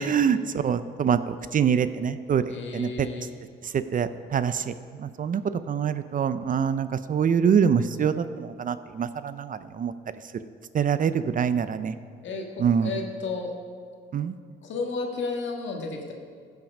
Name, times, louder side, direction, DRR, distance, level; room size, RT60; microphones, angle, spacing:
voice 1, 0.0-3.1 3.6-5.4 5.7-9.9 10.7-12.0 12.6-13.0 14.1-14.4, right 7 dB, 45° right, 13 dB, 0.5 m, -25 dB
voice 2, 2.5-3.2 12.2-13.5 14.6-16.1, left 4 dB, 70° left, 2 dB, 1.8 m, -32 dB
15.5 x 5.9 x 5.4 m, 2.1 s
cardioid pair, 90°, 20 cm